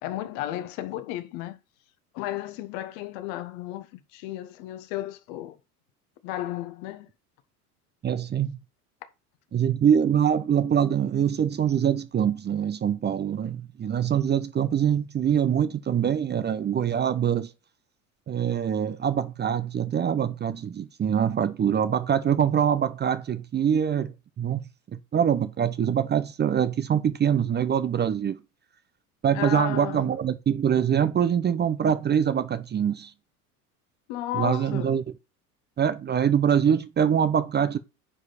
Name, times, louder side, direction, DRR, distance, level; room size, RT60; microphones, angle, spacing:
voice 1, 0.0-1.6 2.1-5.6 6.2-7.1 29.3-30.1 34.1-35.0, left 14 dB, 55° left, 1.4 m, -33 dB
voice 2, 8.0-8.6 9.5-17.5 18.3-24.1 24.4-24.6 24.9-28.4 29.2-33.1 34.3-35.0 35.8-37.8, right 8 dB, 25° right, 0.7 m, -24 dB
9.9 x 4.9 x 4.2 m
hypercardioid pair, 75°, 45 cm